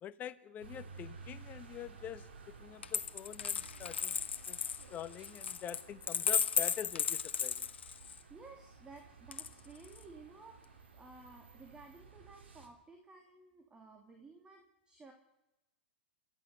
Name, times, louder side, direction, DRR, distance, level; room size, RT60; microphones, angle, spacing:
voice 1, 0.0-4.2 4.5-4.6 4.9-7.7, left 10 dB, 30° left, 12 dB, 1.1 m, -46 dB
sound 1, 0.6-12.7, right 5 dB, 85° right, 3.5 m, -55 dB
Coin (dropping), 2.8-8.2 9.3-10.0, left 7 dB, 85° left, 1.1 m, -35 dB
voice 2, 8.3-15.1, right 3 dB, 15° right, 3 dB, 2.7 m, -55 dB
29.0 x 13.5 x 6.7 m, 1.0 s
hypercardioid pair, 115°, 6 cm